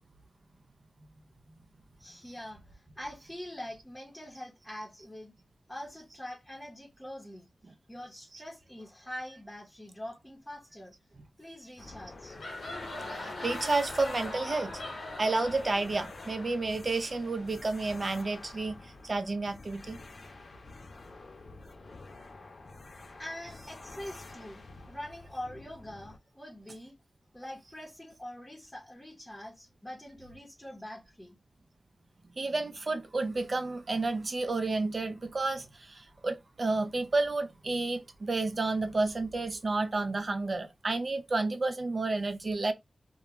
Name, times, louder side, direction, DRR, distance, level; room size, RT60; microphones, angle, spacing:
voice 1, 2.0-5.3 5.7-7.5 7.9-10.9 11.4-12.4 23.2-26.9 27.3-31.4, left 1 dB, 15° left, 0.8 m, -44 dB
sound 1, 11.8-26.2, left 3 dB, 60° left, 0.4 m, -49 dB
sound 2, 12.1-17.7, left 2 dB, 75° left, 0.9 m, -41 dB
voice 2, 13.1-14.8 15.2-20.0 32.4-42.7, right 3 dB, 55° right, 0.5 m, -31 dB
2.2 x 2.1 x 2.9 m
cardioid pair, 60°, 0 cm